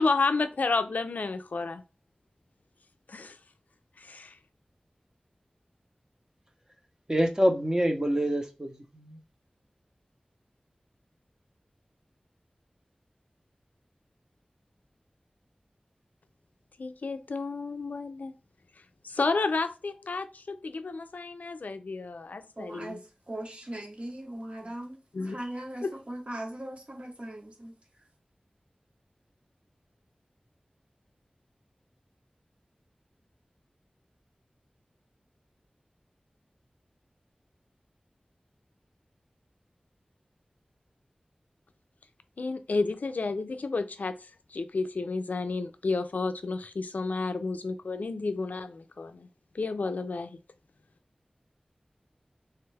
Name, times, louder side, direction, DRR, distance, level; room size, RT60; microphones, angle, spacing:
voice 1, 0.0-1.8 3.1-3.4 4.0-4.4 16.8-18.3 19.0-23.0 25.1-25.4 25.8-25.9 42.4-49.3 49.5-50.4, left 3 dB, 85° left, 0.3 m, -31 dB
voice 2, 7.1-9.2, equal, 25° right, 0.8 m, -26 dB
voice 3, 22.6-25.0 25.2-27.7, right 1 dB, 45° right, 1.0 m, -39 dB
3.2 x 2.3 x 3.2 m
wide cardioid pair, 60°, 3 cm